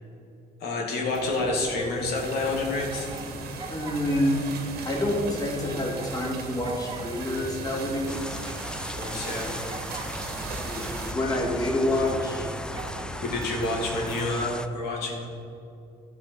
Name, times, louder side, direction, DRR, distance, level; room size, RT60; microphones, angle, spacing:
voice 1, 0.6-3.1 9.0-9.5 13.2-15.2, left 2 dB, 75° left, -2 dB, 2.1 m, -28 dB
sound 1, 1.1-14.2, right 2 dB, 25° right, 1.3 m, -40 dB
sound 2, 2.1-11.1, right 5 dB, 70° right, 1.6 m, -39 dB
voice 2, 3.7-4.4 4.8-8.4 10.6-12.5, left 1 dB, 20° left, -3 dB, 2.5 m, -27 dB
sound 3, 8.1-14.7, left 1 dB, 5° left, 0.4 m, -37 dB
12.5 x 5.2 x 6.2 m, 2.8 s
cardioid pair, 110°, 17 cm